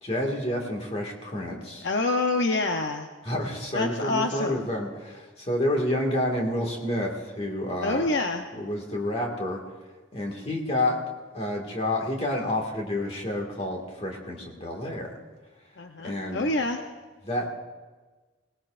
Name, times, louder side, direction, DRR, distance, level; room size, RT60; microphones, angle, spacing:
voice 1, 0.0-1.9 3.2-8.1 8.5-9.6 10.1-11.0 11.3-15.2 16.0-16.5 17.2-17.5, left 1 dB, 30° left, 0 dB, 2.0 m, -29 dB
voice 2, 1.8-3.1 3.7-4.6 7.8-8.5 15.8-16.8, left 2 dB, 65° left, 4 dB, 0.7 m, -27 dB
20.5 x 19.0 x 2.5 m, 1.3 s
head